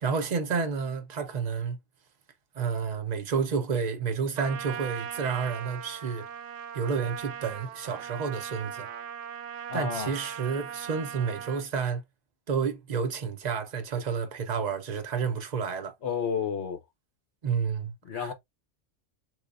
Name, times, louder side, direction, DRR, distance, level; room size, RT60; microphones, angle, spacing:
voice 1, 0.0-1.8 2.5-6.2 6.7-8.9 9.7-12.0 12.5-15.9 17.4-18.3, right 5 dB, 40° right, 0.8 m, -30 dB
Trumpet, 4.4-11.7, right 9 dB, 75° right, 0.9 m, -39 dB
voice 2, 9.7-10.1 16.0-16.8 18.0-18.3, left 7 dB, 60° left, 1.1 m, -31 dB
3.8 x 3.0 x 2.5 m
omnidirectional pair, 1.3 m